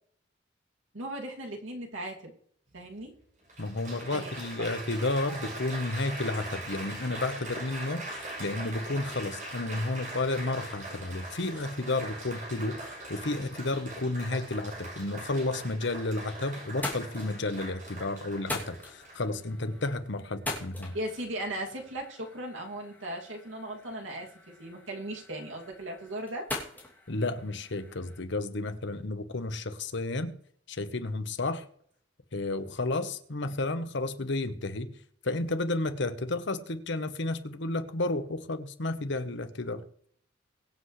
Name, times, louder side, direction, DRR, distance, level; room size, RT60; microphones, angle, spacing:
voice 1, 0.9-2.3 2.7-3.1 4.0-4.3 20.9-26.5, right 1 dB, 80° right, 2.6 m, -37 dB
Applause, 2.7-2.8 3.5-19.4 20.1-20.5, right 1 dB, 45° right, 6.2 m, -41 dB
voice 2, 3.6-20.9 27.1-30.3 30.7-31.6 32.3-34.9 35.2-40.1, left 2 dB, 65° left, 1.1 m, -32 dB
sound 1, 16.1-16.3 16.6-28.2, left 2 dB, 10° left, 2.7 m, -43 dB
23.0 x 8.0 x 3.3 m
head